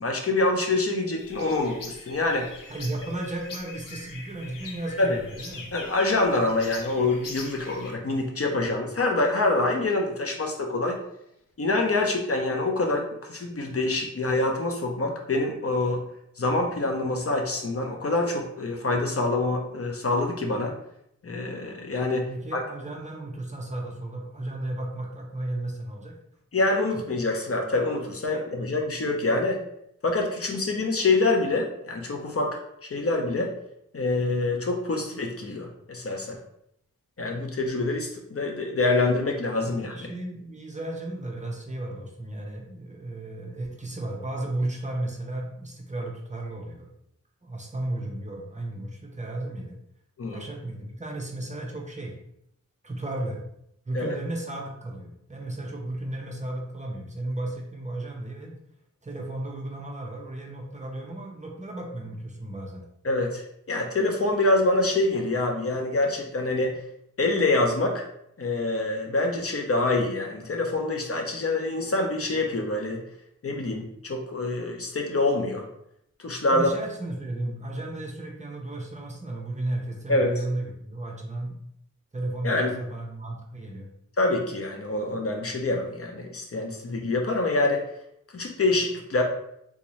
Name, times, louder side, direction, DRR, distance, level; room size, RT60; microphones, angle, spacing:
voice 1, 0.0-2.5 5.0-5.2 5.7-11.0 11.6-16.0 16.4-20.7 21.2-22.6 26.5-29.6 30.0-32.6 32.9-33.5 33.9-36.4 37.2-40.1 50.2-50.4 53.9-54.1 63.0-66.8 67.2-68.0 68.4-73.0 73.4-75.7 76.2-76.7 80.1-80.3 82.4-82.7 84.2-87.8 88.3-89.2, left 2 dB, 45° left, 2 dB, 0.6 m, -26 dB
sound 1, 1.2-7.9, left 3 dB, 85° left, 0.6 m, -43 dB
voice 2, 2.7-5.7 22.3-26.2 26.9-27.0 28.3-28.4 39.6-46.9 47.4-49.8 50.3-52.2 52.8-53.4 53.9-58.5 59.0-62.8 76.5-81.5 82.1-83.9, right 1 dB, 25° right, -1 dB, 0.6 m, -34 dB
3.6 x 2.6 x 3.0 m, 0.75 s
wide cardioid pair, 100°, 32 cm